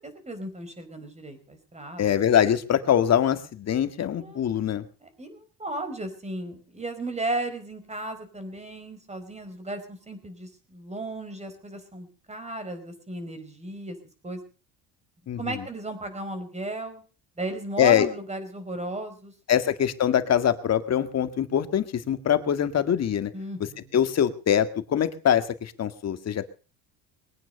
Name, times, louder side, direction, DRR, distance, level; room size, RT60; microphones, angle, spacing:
voice 1, 0.0-2.2 4.1-4.4 5.0-14.0 14.2-14.4 15.4-17.0 17.4-19.3 23.3-23.9, right 2 dB, 20° right, 9 dB, 4.8 m, -35 dB
voice 2, 2.0-4.8 15.3-15.6 17.8-18.1 19.5-23.3 23.9-26.5, left 9 dB, 45° left, 10 dB, 1.9 m, -23 dB
22.0 x 9.4 x 6.6 m, 0.38 s
cardioid pair, 105°, 37 cm